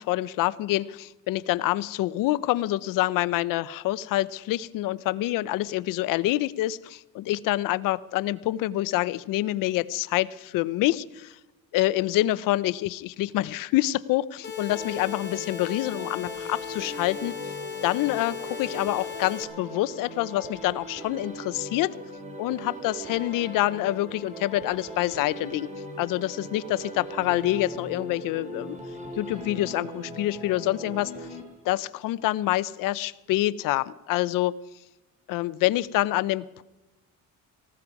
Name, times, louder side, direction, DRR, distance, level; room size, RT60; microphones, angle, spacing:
voice 1, 0.0-11.4 11.7-17.3 17.8-21.9 22.4-25.7 26.0-28.8 29.2-31.1 31.6-34.5 35.3-36.6, left 16 dB, 85° left, 17 dB, 0.7 m, -26 dB
sound 1, 14.4-19.4, left 9 dB, 30° left, 3.7 m, -37 dB
sound 2, 14.7-31.9, right 1 dB, 25° right, 4.6 m, -40 dB
18.5 x 16.0 x 4.8 m, 1.1 s
cardioid pair, 105°, 32 cm